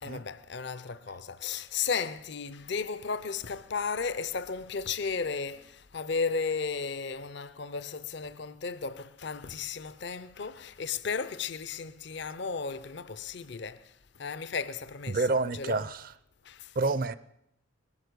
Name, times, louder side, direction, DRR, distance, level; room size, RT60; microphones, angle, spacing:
voice 1, 0.0-13.9 14.2-15.8 16.5-16.7, left 5 dB, 55° left, 0.6 m, -34 dB
voice 2, 15.1-16.1 16.8-17.2, right 3 dB, 45° right, 0.5 m, -28 dB
19.0 x 11.0 x 6.8 m
head